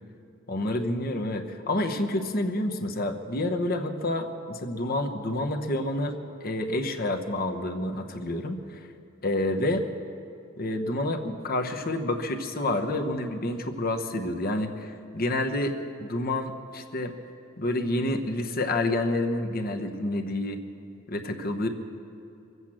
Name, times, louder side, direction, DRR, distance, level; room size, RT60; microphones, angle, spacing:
voice 1, 0.5-6.2 6.4-8.8 9.2-9.8 10.6-17.1 17.6-20.6 21.1-21.7, left 1 dB, 45° left, 5 dB, 1.0 m, -28 dB
23.5 x 8.1 x 7.5 m, 2.7 s
head